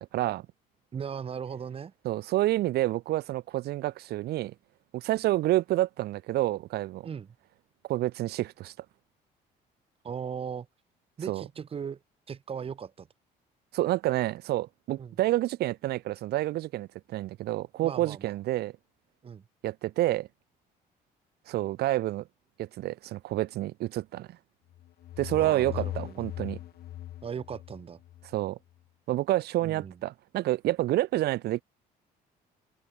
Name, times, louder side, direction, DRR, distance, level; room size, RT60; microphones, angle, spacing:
voice 1, 0.1-0.4 2.0-4.5 4.9-7.1 7.9-8.7 11.3-11.4 13.7-18.7 19.6-20.3 21.5-22.3 22.6-24.3 25.2-26.6 28.3-28.6 29.1-31.6, right 15 dB, 70° right, 1.1 m, -28 dB
voice 2, 0.9-1.9 7.0-7.3 10.0-10.7 11.2-12.0 12.3-13.1 15.0-15.2 17.8-18.3 19.2-19.4 25.3-26.2 27.2-28.0 29.6-30.0, right 7 dB, 35° right, 1.1 m, -38 dB
sound 1, 24.7-28.4, left 13 dB, 65° left, 3.2 m, -39 dB
open air
cardioid pair, 110°, 17 cm